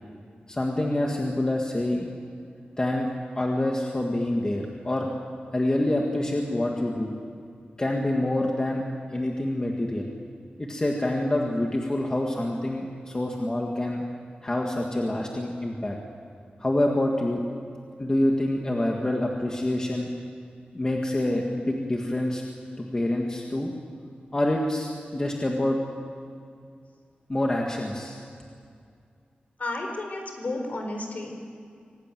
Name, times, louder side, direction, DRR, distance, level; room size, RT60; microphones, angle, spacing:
voice 1, 0.5-2.1 2.8-3.1 3.4-5.1 5.5-7.1 7.8-8.8 9.1-10.1 10.6-14.0 14.4-16.0 16.6-17.4 18.0-20.1 20.7-22.4 22.8-23.7 24.3-25.8 27.3-28.2, left 1 dB, 20° left, 0 dB, 1.8 m, -26 dB
voice 2, 29.6-31.4, left 2 dB, 50° left, 3 dB, 4.4 m, -32 dB
25.5 x 18.5 x 9.2 m, 2.3 s
wide cardioid pair, 155°, 3 cm